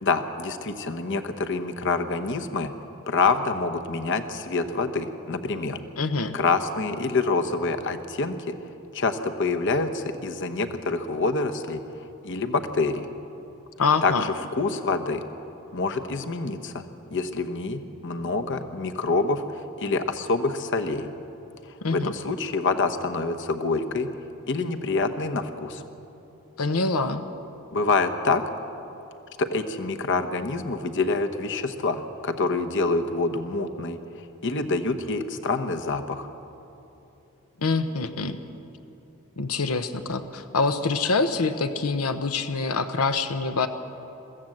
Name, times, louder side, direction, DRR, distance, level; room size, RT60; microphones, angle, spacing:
voice 1, 0.0-2.7 3.1-5.8 6.3-8.5 8.9-11.8 12.2-13.1 14.0-15.2 15.7-16.8 17.1-19.4 19.8-21.1 21.9-24.1 24.5-25.8 27.7-28.4 29.4-34.0 34.4-36.3, left 3 dB, 60° left, 7 dB, 1.0 m, -26 dB
voice 2, 6.0-6.3 13.8-14.2 21.8-22.1 26.6-27.2 37.6-38.4 39.4-43.7, left 4 dB, 90° left, 8 dB, 0.9 m, -25 dB
23.0 x 14.5 x 7.8 m, 3.0 s
head